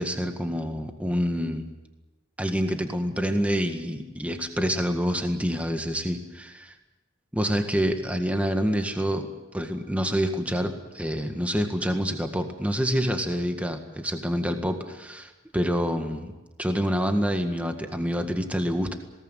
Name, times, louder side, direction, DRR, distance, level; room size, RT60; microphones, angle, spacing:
voice 1, 0.0-1.7 2.4-6.7 7.3-9.3 9.5-16.3 16.6-19.0, equal, 5° right, 5 dB, 1.8 m, -27 dB
21.5 x 18.5 x 9.2 m, 1.1 s
head